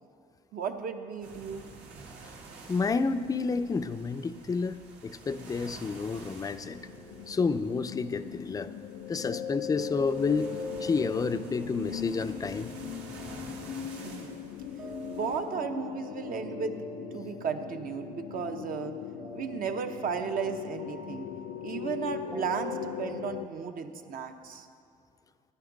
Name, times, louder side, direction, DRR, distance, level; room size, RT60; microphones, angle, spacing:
voice 1, 0.5-1.6 14.0-14.5 15.1-16.8 17.1-19.0 19.3-21.3 21.6-24.7, right 6 dB, 55° right, 6 dB, 0.9 m, -34 dB
sound 1, 1.2-15.4, right 3 dB, 75° right, 1.8 m, -50 dB
voice 2, 2.7-6.8 7.3-8.7 9.1-10.5 10.8-12.7, left 4 dB, 20° left, 11 dB, 0.4 m, -30 dB
sound 2, 5.2-23.5, left 10 dB, 85° left, 0.4 m, -40 dB
sound 3, 6.6-23.3, right 3 dB, 30° right, 0.9 m, -47 dB
14.5 x 10.5 x 4.0 m, 2.3 s
cardioid pair, 110°, 17 cm